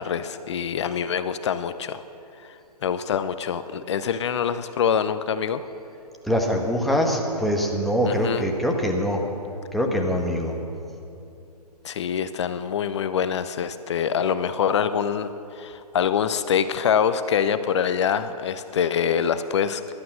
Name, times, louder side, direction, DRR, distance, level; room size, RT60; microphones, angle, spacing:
voice 1, 0.0-2.0 2.4-5.6 8.0-8.5 11.8-19.9, left 7 dB, 45° left, 12 dB, 0.6 m, -25 dB
voice 2, 6.2-9.2 9.7-10.5, equal, ahead, 1 dB, 1.1 m, -23 dB
15.0 x 11.5 x 6.2 m, 2.7 s
figure-of-eight pair, 140°, 21 cm